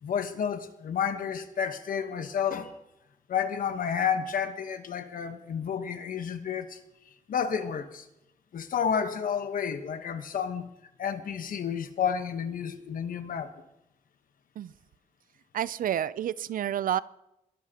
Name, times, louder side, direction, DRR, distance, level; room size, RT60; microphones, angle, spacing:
voice 1, 0.0-2.7 3.3-6.8 7.3-8.1 8.5-10.7 11.0-13.5, left 7 dB, 90° left, 9 dB, 1.1 m, -30 dB
voice 2, 15.5-17.0, right 10 dB, 85° right, 18 dB, 0.4 m, -29 dB
22.0 x 13.5 x 2.9 m, 0.87 s
wide cardioid pair, 155°, 14 cm